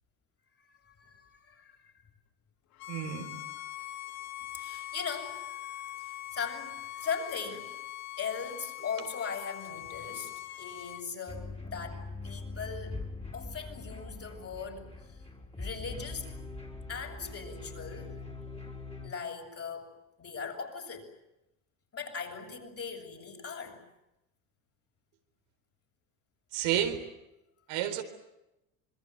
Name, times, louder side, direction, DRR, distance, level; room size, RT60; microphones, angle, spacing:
voice 1, 0.6-1.9 4.5-7.8 8.2-15.2 15.6-16.3 16.9-18.6 19.0-19.9 20.2-21.1 21.9-23.8, left 6 dB, 35° left, 2 dB, 6.9 m, -40 dB
Bowed string instrument, 2.8-11.0, left 15 dB, 60° left, 1.9 m, -42 dB
voice 2, 2.9-3.4 26.5-27.1 27.7-28.0, right 10 dB, 75° right, 5 dB, 4.1 m, -31 dB
sound 1, 11.3-19.1, left 3 dB, 15° left, 5.0 m, -42 dB
26.0 x 22.0 x 9.6 m, 0.91 s
supercardioid pair, 100°, 40 cm